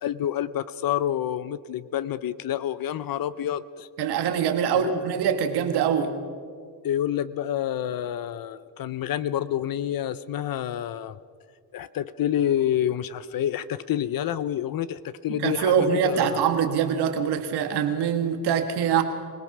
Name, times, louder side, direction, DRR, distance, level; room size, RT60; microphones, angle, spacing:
voice 1, 0.0-3.9 4.7-4.9 6.8-11.2 11.7-16.4, left 11 dB, 60° left, 15 dB, 0.7 m, -28 dB
voice 2, 4.0-6.1 15.3-19.0, right 8 dB, 85° right, 6 dB, 2.0 m, -24 dB
25.0 x 18.0 x 6.1 m, 2.1 s
cardioid pair, 80°, 39 cm